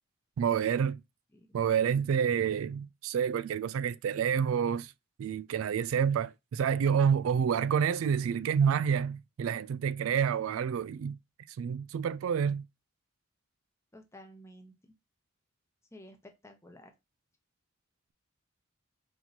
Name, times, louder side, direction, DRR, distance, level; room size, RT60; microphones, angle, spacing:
voice 1, 0.4-1.0 1.5-4.9 5.2-11.2 11.6-12.7, right 7 dB, 80° right, 0.3 m, -28 dB
voice 2, 13.9-14.7 15.9-16.9, left 1 dB, 15° left, 0.8 m, -52 dB
4.5 x 2.9 x 3.9 m
head